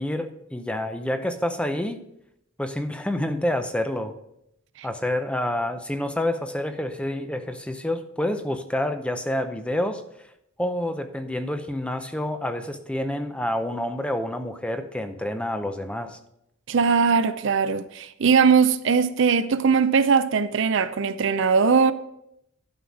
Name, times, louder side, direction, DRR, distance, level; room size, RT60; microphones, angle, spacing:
voice 1, 0.0-2.0 2.6-4.2 4.8-10.0 10.6-16.2, left 1 dB, 5° left, 0.5 m, -28 dB
voice 2, 16.7-21.9, right 5 dB, 60° right, 0.5 m, -20 dB
11.5 x 5.7 x 4.9 m
head